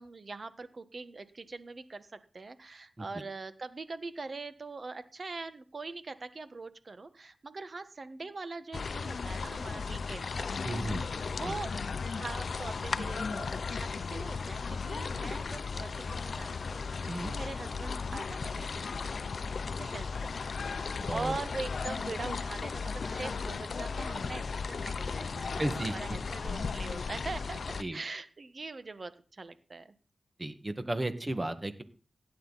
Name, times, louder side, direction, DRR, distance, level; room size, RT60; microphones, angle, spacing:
voice 1, 0.0-10.5 10.9-11.8 12.1-19.3 19.7-20.5 20.7-29.9, right 3 dB, 55° right, 11 dB, 1.3 m, -42 dB
sound 1, 8.7-27.8, left 5 dB, 75° left, 0.6 m, -36 dB
voice 2, 10.6-11.0 17.1-17.3 21.0-21.4 25.6-26.2 27.8-28.0 30.4-31.8, right 1 dB, 30° right, 9 dB, 1.8 m, -34 dB
16.5 x 9.5 x 4.1 m, 0.36 s
cardioid pair, 50°, 0 cm